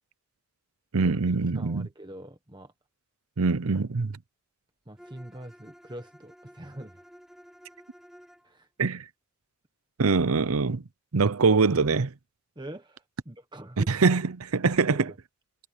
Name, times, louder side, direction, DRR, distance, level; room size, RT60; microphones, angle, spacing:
voice 1, 0.9-1.9 3.4-4.2 8.8-9.0 10.0-10.8 11.1-12.1 13.8-15.1, right 4 dB, 80° right, 0.7 m, -23 dB
voice 2, 1.5-2.7 4.9-7.0 8.4-8.7 12.6-13.9 15.0-15.1, right 1 dB, 20° right, 1.3 m, -43 dB
Bowed string instrument, 5.0-8.5, equal, ahead, 4.0 m, -53 dB
head